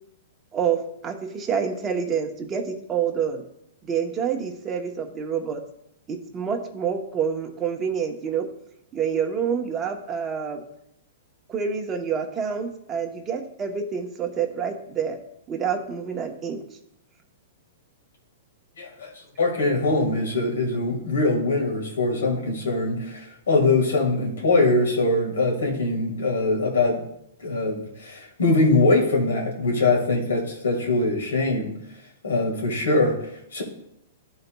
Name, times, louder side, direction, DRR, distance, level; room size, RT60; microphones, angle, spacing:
voice 1, 0.5-3.4 3.9-5.6 6.1-8.5 8.9-10.6 11.5-15.2 15.5-16.6, right 7 dB, 25° right, 3 dB, 0.8 m, -27 dB
voice 2, 18.8-19.1 19.4-27.0 27.4-31.7 32.2-33.2 33.5-33.6, left 2 dB, 85° left, 0 dB, 1.8 m, -22 dB
11.5 x 4.0 x 2.3 m, 0.78 s
hypercardioid pair, 135°, 0 cm